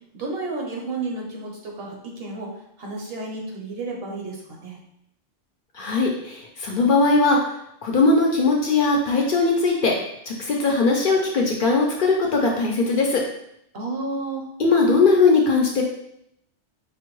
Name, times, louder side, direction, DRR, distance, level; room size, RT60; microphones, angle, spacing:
voice 1, 0.1-2.5 2.8-4.8 13.7-14.4, right 3 dB, 60° right, -1 dB, 1.0 m, -31 dB
voice 2, 5.8-7.4 7.8-9.9 10.3-13.2 14.6-15.8, left 3 dB, 55° left, -1 dB, 0.7 m, -19 dB
5.0 x 2.2 x 3.0 m, 0.75 s
omnidirectional pair, 1.2 m